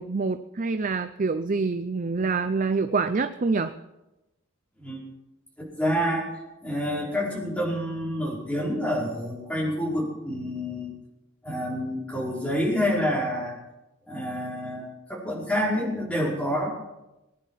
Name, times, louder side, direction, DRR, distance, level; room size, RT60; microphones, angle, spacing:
voice 1, 0.0-3.7, right 4 dB, 40° right, 10 dB, 0.5 m, -26 dB
voice 2, 5.6-10.9 11.4-13.5 14.1-16.7, equal, 5° left, -4 dB, 5.0 m, -28 dB
21.0 x 10.5 x 5.7 m, 0.97 s
head